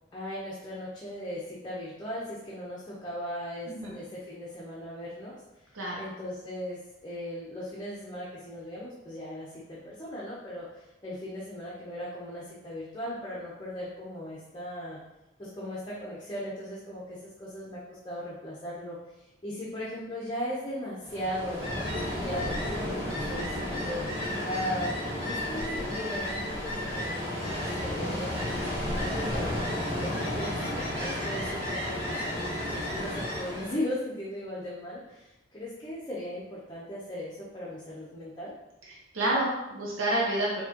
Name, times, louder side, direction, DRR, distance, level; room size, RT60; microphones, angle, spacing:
voice 1, 0.1-5.4 6.0-15.0 15.4-24.0 24.4-29.6 30.0-38.6, left 1 dB, 20° left, -7 dB, 0.7 m, -38 dB
voice 2, 5.7-6.1 38.9-40.6, right 1 dB, 85° right, -4 dB, 0.8 m, -29 dB
Ocean, 21.0-33.8, left 1 dB, 60° right, 1.4 m, -32 dB
4.7 x 2.8 x 2.9 m, 0.95 s
head